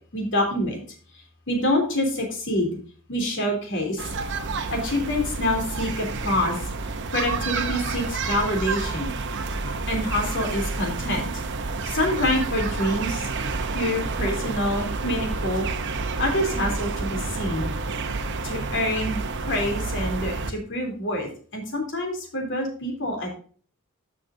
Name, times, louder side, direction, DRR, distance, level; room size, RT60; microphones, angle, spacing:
voice 1, 0.1-0.8 1.1-2.7 3.1-4.1 4.7-6.6 7.1-9.1 9.9-11.3 11.8-13.3 13.7-15.7 16.2-17.7 18.4-23.4, left 1 dB, 55° left, 2 dB, 3.2 m, -26 dB
sound 1, 4.0-20.5, right 3 dB, 55° right, 0.8 m, -29 dB
12.5 x 6.5 x 2.7 m, 0.43 s
head